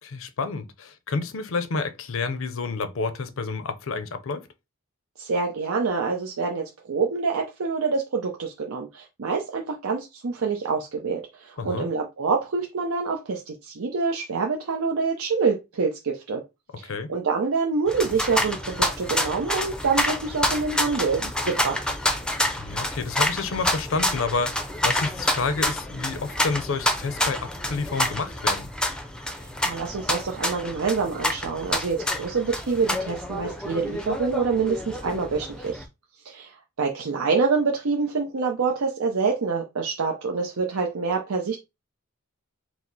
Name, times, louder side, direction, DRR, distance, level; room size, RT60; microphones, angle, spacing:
voice 1, 0.0-4.5 11.6-11.9 16.8-17.1 22.6-28.7, left 4 dB, 70° left, 0.6 m, -29 dB
voice 2, 5.2-16.4 16.8-21.8 29.4-35.9 36.2-41.6, right 4 dB, 85° right, 0.6 m, -26 dB
sound 1, 17.9-35.8, left 1 dB, 5° left, 0.5 m, -28 dB
4.7 x 2.0 x 3.9 m
head